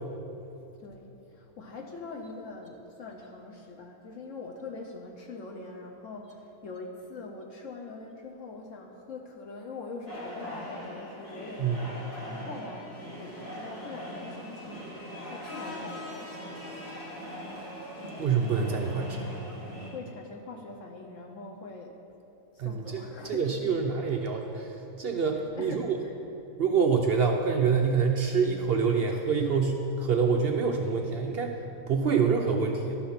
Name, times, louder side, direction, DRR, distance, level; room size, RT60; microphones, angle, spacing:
voice 1, 0.8-16.7 19.8-22.0 22.5-24.1 25.5-26.1 32.4-32.5, left 3 dB, 60° left, 1 dB, 1.0 m, -43 dB
sound 1, 10.1-19.9, equal, 75° left, 3.4 m, -41 dB
voice 2, 11.6-11.9 18.2-19.2 22.6-26.0 26.6-31.5 31.9-33.0, right 5 dB, 70° right, 3 dB, 0.5 m, -26 dB
12.0 x 6.0 x 5.7 m, 2.9 s
omnidirectional pair, 1.7 m